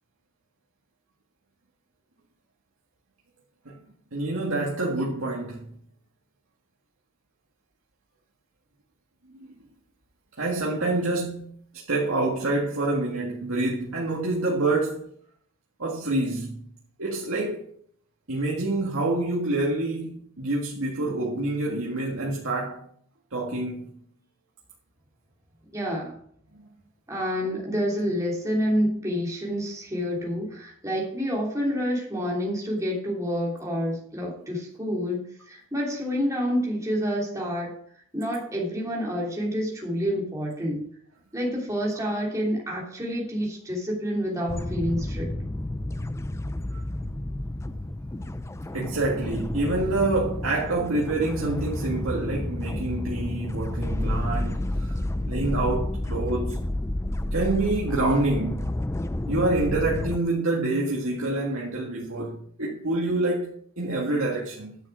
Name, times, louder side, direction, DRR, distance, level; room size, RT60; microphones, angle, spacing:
voice 1, 4.1-5.7 9.3-9.5 10.4-11.5 11.9-15.1 15.8-16.7 17.0-17.6 18.3-22.8 23.3-24.0 26.5-26.7 48.7-55.0 55.3-56.6 57.3-58.7 59.3-64.8, right 2 dB, 70° right, 1.8 m, -27 dB
voice 2, 25.7-26.2 27.1-37.8 38.1-40.8 41.3-45.3, equal, 15° right, 3.0 m, -28 dB
sound 1, 44.5-60.2, left 1 dB, 15° left, 0.4 m, -30 dB
10.5 x 7.3 x 6.1 m
head